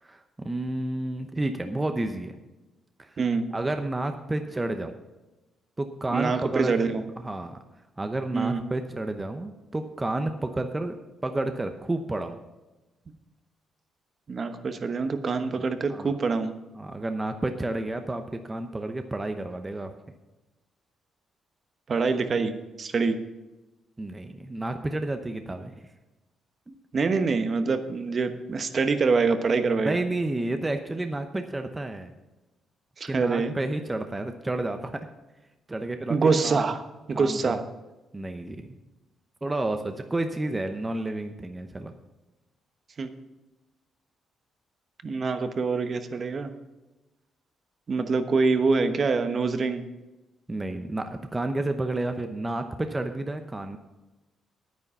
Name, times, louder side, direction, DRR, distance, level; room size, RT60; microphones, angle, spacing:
voice 1, 0.0-2.4 3.0-3.2 3.5-4.9 5.8-7.6 8.0-11.0 11.2-12.4 15.6-15.7 15.9-16.1 16.8-19.9 24.0-25.8 26.7-26.8 29.8-32.1 33.1-35.1 35.7-36.2 36.4-36.7 37.1-37.6 38.1-38.8 39.4-41.9 50.5-53.8, right 2 dB, 20° right, 7 dB, 0.8 m, -31 dB
voice 2, 3.2-3.5 6.1-7.0 8.3-8.6 14.3-16.5 21.9-22.5 22.8-23.2 26.9-30.0 33.0-33.5 36.1-36.8 37.1-37.6 43.0-43.1 45.0-46.5 47.9-49.8, right 4 dB, 45° right, 9 dB, 1.1 m, -25 dB
9.9 x 9.4 x 5.6 m, 1.1 s
cardioid pair, 85°, 0 cm